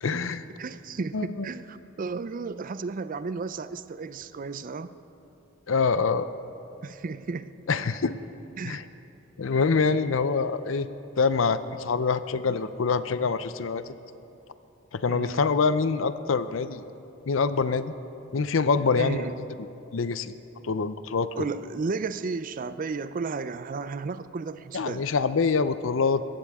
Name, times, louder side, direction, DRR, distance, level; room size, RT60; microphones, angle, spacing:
voice 1, 0.0-0.4 1.1-1.5 5.7-6.3 7.7-8.2 8.6-8.8 9.4-10.9 11.2-13.9 14.9-16.8 17.3-17.9 18.3-19.3 19.9-20.3 20.6-21.5 24.7-26.2, left 4 dB, 75° left, 13 dB, 0.6 m, -25 dB
voice 2, 0.6-4.9 6.8-7.5 8.6-8.8 15.1-15.4 19.0-19.4 21.4-25.1, right 4 dB, 45° right, 14 dB, 0.4 m, -33 dB
21.0 x 15.5 x 3.6 m, 2.8 s
head